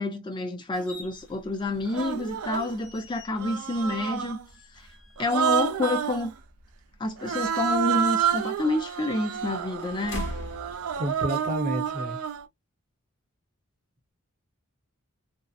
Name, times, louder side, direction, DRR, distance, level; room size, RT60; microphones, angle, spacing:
voice 1, 0.0-4.4 4.8-4.9 5.2-6.3 7.0-10.2, left 2 dB, 20° left, 0.3 m, -28 dB
Human voice, 0.7-0.9 1.9-2.8 3.4-4.5 5.2-6.3 7.2-12.5, right 8 dB, 85° right, 0.4 m, -29 dB
sound 1, 0.9-11.7, left 1 dB, 55° left, 0.8 m, -45 dB
voice 2, 10.9-12.2, equal, 35° right, 0.8 m, -30 dB
2.6 x 2.0 x 2.3 m
head